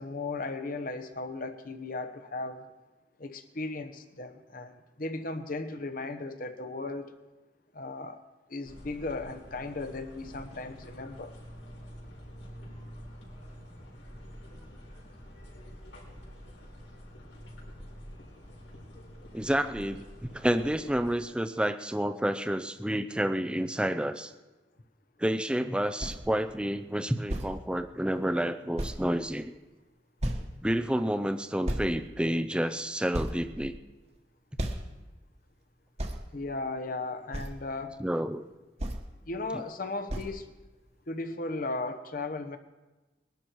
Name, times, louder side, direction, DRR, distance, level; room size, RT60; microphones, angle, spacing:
voice 1, 0.0-2.7 3.2-7.1 7.7-8.2 8.5-11.3 30.4-30.5 36.3-38.0 39.3-40.5 41.1-42.6, left 2 dB, 50° left, 9 dB, 1.1 m, -36 dB
sound 1, 8.6-21.1, equal, 85° left, 4.6 m, -47 dB
voice 2, 19.3-24.3 25.2-29.5 30.6-33.7 38.0-38.4, equal, 5° right, 8 dB, 0.5 m, -29 dB
sound 2, 26.0-26.3 27.3-27.5 28.3-28.4 28.8-29.0 30.2-30.6 31.6-31.9 32.6-32.7 33.1-34.0 34.6-34.9 36.0-36.2 37.3-37.5 38.8-39.0 40.1-40.3, right 1 dB, 35° right, 1.4 m, -33 dB
21.0 x 11.5 x 4.6 m, 1.2 s
head